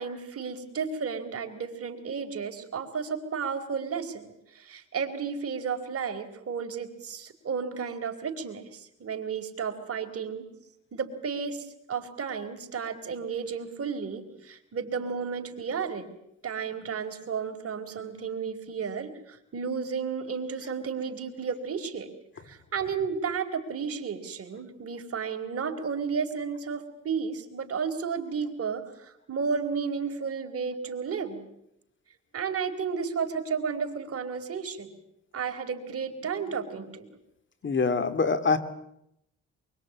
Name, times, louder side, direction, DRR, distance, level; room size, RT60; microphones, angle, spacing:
voice 1, 0.0-10.5 10.9-16.1 16.4-22.1 22.5-31.4 32.3-34.9 35.3-37.1, right 6 dB, 50° right, 4 dB, 4.4 m, -33 dB
voice 2, 37.6-38.6, left 4 dB, 40° left, 11 dB, 2.6 m, -24 dB
24.5 x 24.0 x 8.8 m, 0.78 s
cardioid pair, 90°, 30 cm